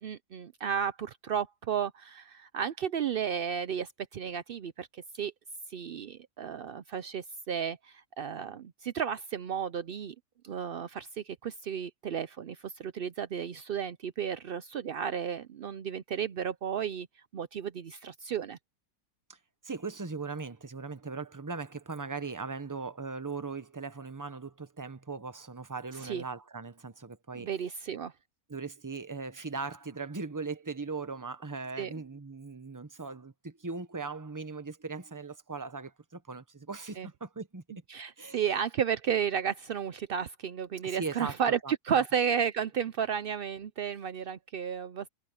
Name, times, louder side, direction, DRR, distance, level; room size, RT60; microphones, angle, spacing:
voice 1, 0.0-5.3 5.7-10.1 10.4-17.1 17.3-18.6 26.0-26.2 27.4-28.1 31.8-31.9 37.0-37.1 37.9-41.6 41.8-45.1, right 8 dB, 80° right, 0.5 m, -33 dB
voice 2, 19.6-27.5 28.5-37.6 38.2-38.4 40.8-42.0, right 4 dB, 15° right, 0.8 m, -39 dB
omnidirectional pair, 1.7 m